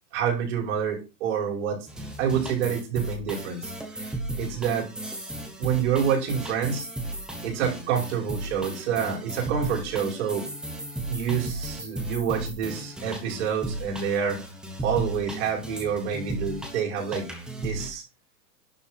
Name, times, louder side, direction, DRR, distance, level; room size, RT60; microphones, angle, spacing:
voice 1, 0.1-1.9 2.2-4.9 5.6-6.9 7.4-10.5 11.1-14.4 14.8-17.3 17.5-18.0, right 7 dB, 40° right, -1 dB, 5.6 m, -28 dB
sound 1, 1.9-17.9, right 1 dB, ahead, 0.9 m, -35 dB
11.5 x 7.3 x 4.5 m, 0.29 s
hypercardioid pair, 170°, 50 cm